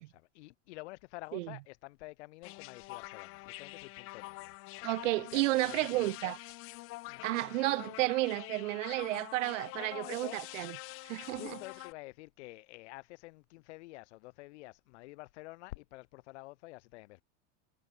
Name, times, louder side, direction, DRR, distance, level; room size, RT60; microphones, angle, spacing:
voice 1, 0.0-6.3 7.1-7.2 9.7-10.7 11.3-17.2, left 21 dB, 65° left, 1.2 m, -49 dB
sound 1, 2.4-11.9, left 22 dB, 35° left, 1.8 m, -46 dB
voice 2, 4.8-6.4 7.2-10.8 11.0-11.6, right 20 dB, 85° right, 1.0 m, -32 dB
supercardioid pair, 175°, 37 cm